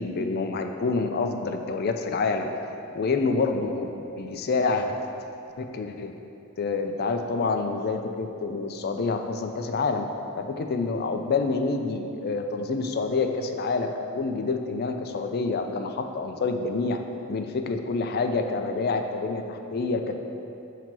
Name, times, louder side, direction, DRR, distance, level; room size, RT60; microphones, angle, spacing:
voice 1, 0.0-2.5 2.9-3.9 4.2-4.9 5.6-6.1 6.6-10.1 10.4-17.0 17.3-20.2, left 4 dB, 45° left, 5 dB, 0.4 m, -27 dB
7.4 x 2.8 x 5.9 m, 2.8 s
head